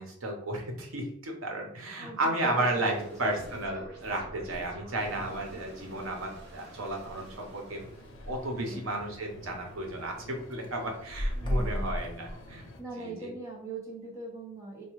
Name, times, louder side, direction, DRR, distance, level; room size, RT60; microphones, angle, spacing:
voice 1, 0.0-7.8 8.3-12.6 13.0-13.3, right 1 dB, 90° right, 2 dB, 0.8 m, -33 dB
voice 2, 2.0-3.4 8.5-8.9 11.4-11.9 12.8-14.8, right 3 dB, 15° right, -2 dB, 0.7 m, -41 dB
sound 1, 2.4-8.2, equal, 55° right, 0.9 m, -48 dB
sound 2, 6.6-6.9 7.3-7.4 7.6-7.7 8.0-8.4 9.0-9.1 9.4-10.2 10.5-12.7, equal, 25° left, 0.5 m, -33 dB
sound 3, 7.7-12.8, left 1 dB, 80° left, 0.7 m, -50 dB
4.5 x 2.3 x 3.0 m, 0.71 s
head